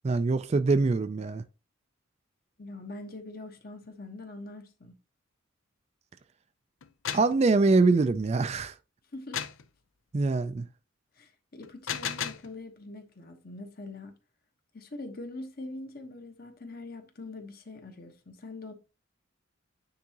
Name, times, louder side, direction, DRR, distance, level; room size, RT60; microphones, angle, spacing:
voice 1, 0.0-1.4 7.1-8.7 10.1-10.6, right 3 dB, 30° right, 0.3 m, -24 dB
voice 2, 2.6-4.9 9.1-9.4 11.2-14.1 14.7-18.7, left 2 dB, 45° left, 1.1 m, -43 dB
sound 1, 6.8-7.4 9.3-9.7 11.6-12.5, left 8 dB, 80° left, 0.6 m, -34 dB
9.7 x 3.7 x 2.9 m
head